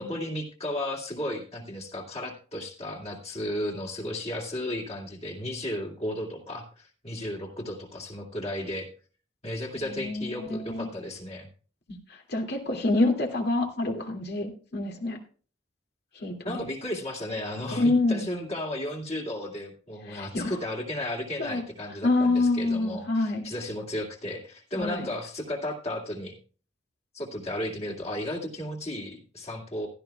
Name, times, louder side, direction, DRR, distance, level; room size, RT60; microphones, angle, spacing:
voice 1, 0.0-8.9 9.4-11.5 16.4-26.4 27.1-29.9, left 1 dB, 35° left, -1 dB, 2.4 m, -34 dB
voice 2, 9.9-10.9 12.1-15.2 16.2-16.6 17.7-18.2 20.1-20.6 21.4-21.6 22.0-23.4 24.8-25.1, left 2 dB, 60° left, 2 dB, 2.3 m, -27 dB
16.0 x 12.0 x 2.3 m, 0.39 s
head